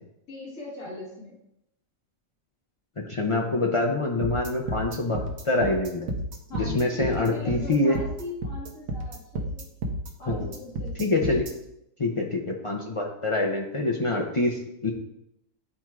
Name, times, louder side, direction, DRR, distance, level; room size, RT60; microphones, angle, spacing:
voice 1, 0.3-1.4 6.5-9.7 10.2-11.1, left 2 dB, 85° left, -5 dB, 1.8 m, -39 dB
voice 2, 3.0-6.1 6.5-8.0 10.3-10.5 11.0-11.4 12.0-14.9, left 2 dB, 40° left, 0 dB, 0.4 m, -26 dB
sound 1, 4.2-11.5, right 1 dB, 90° right, 1.3 m, -31 dB
9.8 x 4.4 x 2.4 m, 0.82 s
omnidirectional pair, 1.4 m